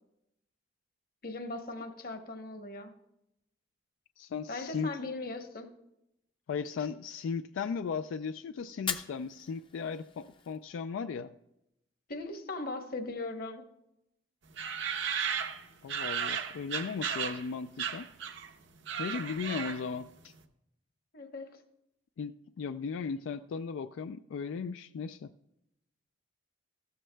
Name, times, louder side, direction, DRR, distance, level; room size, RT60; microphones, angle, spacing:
voice 1, 1.2-2.9 4.5-5.7 12.1-13.7 21.1-21.6, left 2 dB, 50° left, 5 dB, 1.0 m, -39 dB
voice 2, 4.2-4.9 6.5-11.3 15.8-18.1 19.0-20.3 22.2-25.3, left 5 dB, 90° left, 10 dB, 0.3 m, -36 dB
Fire, 8.7-10.7, left 7 dB, 25° left, 0.5 m, -40 dB
sound 1, 14.6-17.5 17.8-18.5 18.8-20.0, right 7 dB, 70° right, 0.7 m, -34 dB
15.0 x 12.5 x 2.2 m, 0.85 s
head